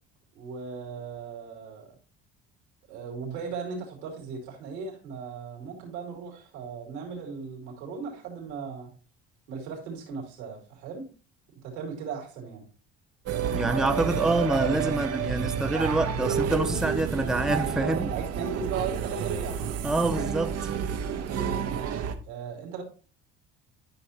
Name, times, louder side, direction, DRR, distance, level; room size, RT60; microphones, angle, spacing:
voice 1, 0.3-1.9 2.9-8.9 9.5-11.1 11.5-12.7 17.8-19.6 21.3-22.8, right 5 dB, 80° right, 2.6 m, -37 dB
sound 1, 13.3-22.2, right 8 dB, 50° right, 1.0 m, -30 dB
voice 2, 13.5-18.1 19.8-20.7, right 2 dB, ahead, 0.6 m, -26 dB
10.5 x 5.7 x 2.8 m
hypercardioid pair, 65°, 33 cm